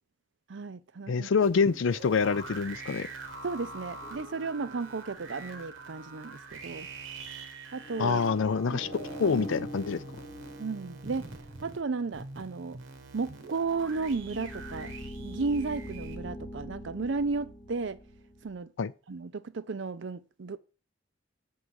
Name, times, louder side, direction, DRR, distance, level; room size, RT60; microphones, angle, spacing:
voice 1, 0.5-1.3 3.4-6.9 7.7-8.2 8.7-8.9 9.2-9.4 10.6-11.3 11.6-12.8 13.1-14.9 15.2-18.0 18.4-18.7 19.1-20.6, right 4 dB, 70° right, 0.5 m, -34 dB
voice 2, 1.1-3.1 8.0-10.0 18.8-18.9, left 5 dB, 80° left, 0.4 m, -26 dB
sound 1, 1.4-16.2, right 3 dB, 85° right, 1.3 m, -45 dB
sound 2, 4.0-5.5 7.7-12.2 13.6-18.6, equal, 20° left, 1.0 m, -44 dB
7.0 x 3.8 x 6.3 m
head